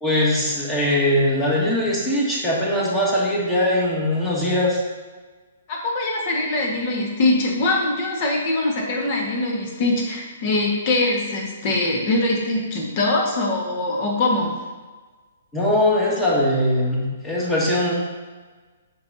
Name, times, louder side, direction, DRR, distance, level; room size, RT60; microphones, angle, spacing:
voice 1, 0.0-4.8 15.5-17.9, left 1 dB, 15° left, -5 dB, 1.9 m, -21 dB
voice 2, 5.7-14.5, left 2 dB, 45° left, -1 dB, 1.6 m, -22 dB
7.6 x 6.1 x 2.8 m, 1.4 s
hypercardioid pair, 140°, 0 cm